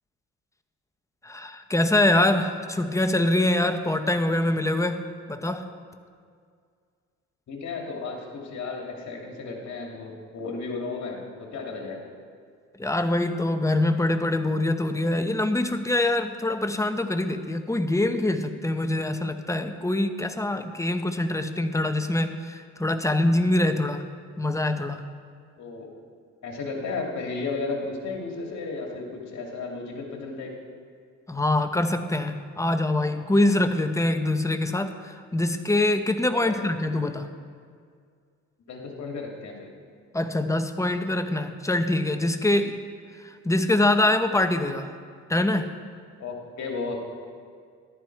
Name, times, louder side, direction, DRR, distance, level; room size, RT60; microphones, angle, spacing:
voice 1, 1.2-5.0 5.3-5.7 12.8-24.0 24.4-25.0 31.3-37.3 40.1-42.8 43.2-44.9 45.3-45.7, left 1 dB, 10° left, 8 dB, 0.9 m, -24 dB
voice 2, 7.5-12.0 25.6-25.9 26.4-30.5 36.3-36.6 38.7-39.7 46.2-47.0, left 3 dB, 65° left, 0 dB, 2.4 m, -34 dB
14.0 x 11.5 x 4.6 m, 2.1 s
cardioid pair, 90°, 30 cm